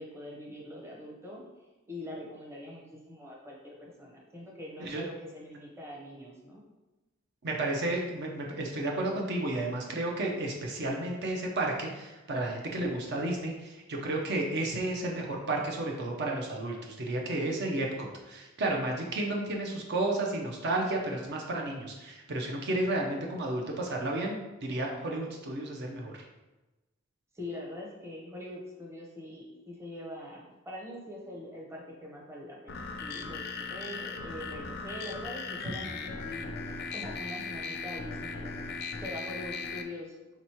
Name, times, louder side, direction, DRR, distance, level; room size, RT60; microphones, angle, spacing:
voice 1, 0.0-1.4 1.9-6.6 27.3-38.5 39.0-40.1, left 1 dB, 15° right, -2 dB, 0.7 m, -43 dB
voice 2, 7.4-26.2, right 2 dB, 55° right, 0 dB, 0.6 m, -32 dB
sound 1, 32.7-39.8, left 4 dB, 55° left, 0.4 m, -38 dB
3.5 x 2.9 x 4.4 m, 1.1 s
head